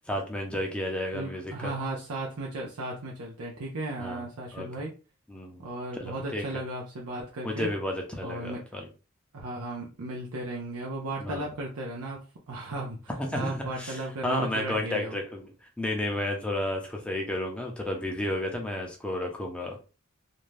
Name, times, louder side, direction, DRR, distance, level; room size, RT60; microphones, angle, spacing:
voice 1, 0.1-1.7 4.0-4.2 4.5-4.7 5.3-5.6 5.9-6.4 7.4-8.9 11.2-11.5 13.2-19.8, left 1 dB, 5° left, 0 dB, 0.5 m, -32 dB
voice 2, 1.1-4.9 5.6-7.7 8.2-8.6 9.3-13.0 13.3-15.2, right 2 dB, 90° right, -2 dB, 0.6 m, -35 dB
2.5 x 2.1 x 3.1 m, 0.33 s
head